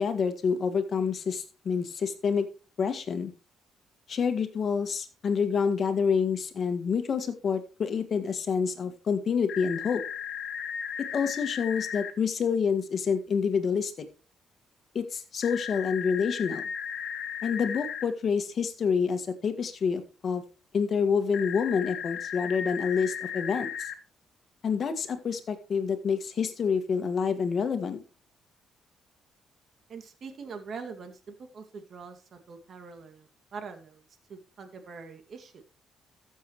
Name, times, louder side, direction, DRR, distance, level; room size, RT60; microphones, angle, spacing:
voice 1, 0.0-2.5 2.8-3.3 4.1-10.0 11.1-14.1 14.9-16.6 17.4-20.4 20.7-23.9 24.6-28.0, left 6 dB, 50° left, 9 dB, 1.8 m, -28 dB
sound 1, 9.5-12.1 15.4-18.0 21.3-23.9, left 8 dB, 75° left, 1.2 m, -36 dB
voice 2, 29.9-34.0 34.3-35.7, right 5 dB, 55° right, 6 dB, 2.2 m, -43 dB
14.0 x 7.3 x 3.1 m, 0.33 s
cardioid pair, 90°, 0 cm